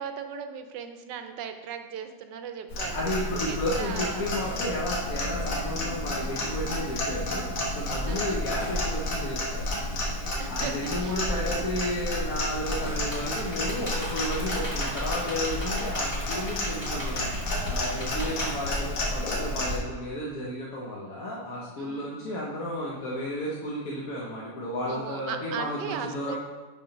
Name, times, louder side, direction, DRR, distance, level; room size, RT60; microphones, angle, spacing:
voice 1, 0.0-3.0 3.5-4.2 8.1-8.4 10.4-11.5 14.5-14.8 18.2-18.7 21.8-22.3 24.9-26.4, right 7 dB, 75° right, 7 dB, 1.2 m, -38 dB
Clock, 2.7-19.8, left 1 dB, 85° left, 2.2 m, -31 dB
voice 2, 2.9-9.7 10.5-26.4, left 1 dB, 55° left, -5 dB, 1.3 m, -33 dB
Computer keyboard, 13.1-19.4, equal, 15° left, 2.0 m, -38 dB
6.8 x 5.4 x 5.2 m, 1.3 s
omnidirectional pair, 2.0 m